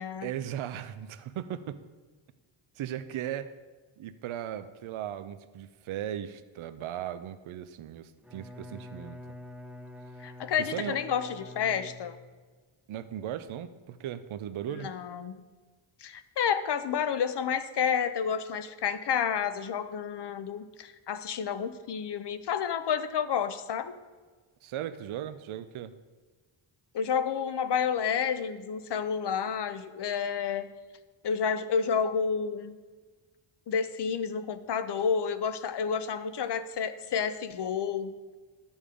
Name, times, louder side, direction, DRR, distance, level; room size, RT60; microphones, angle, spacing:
voice 1, 0.2-1.8 2.8-3.6 4.0-9.2 10.6-11.0 12.9-14.9 24.6-25.9, right 10 dB, 70° right, 11 dB, 0.6 m, -37 dB
Bowed string instrument, 8.2-12.5, left 2 dB, 5° right, 0.7 m, -46 dB
voice 2, 10.2-12.2 14.7-15.4 16.0-24.0 26.9-30.7 31.2-32.8 33.7-38.1, left 7 dB, 55° left, 12 dB, 0.8 m, -30 dB
11.5 x 7.2 x 5.0 m, 1.4 s
wide cardioid pair, 115°, 50 cm